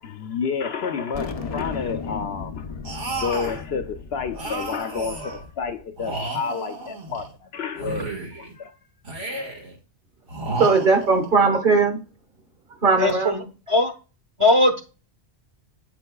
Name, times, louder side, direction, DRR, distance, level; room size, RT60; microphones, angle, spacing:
voice 1, 0.0-2.7 3.1-8.8, left 6 dB, 65° left, 0.8 m, -30 dB
sound 1, 1.1-5.8, left 5 dB, 40° left, 0.6 m, -35 dB
sound 2, 2.8-3.6 4.3-5.5 6.0-7.3 7.8-8.5 9.0-9.7 10.3-11.3, right 2 dB, 85° right, 2.1 m, -32 dB
voice 2, 10.5-12.0 12.7-13.3, right 4 dB, 45° right, 1.4 m, -19 dB
voice 3, 13.0-13.9 14.4-14.8, left 2 dB, 30° right, 0.9 m, -19 dB
9.0 x 5.9 x 2.2 m
omnidirectional pair, 1.2 m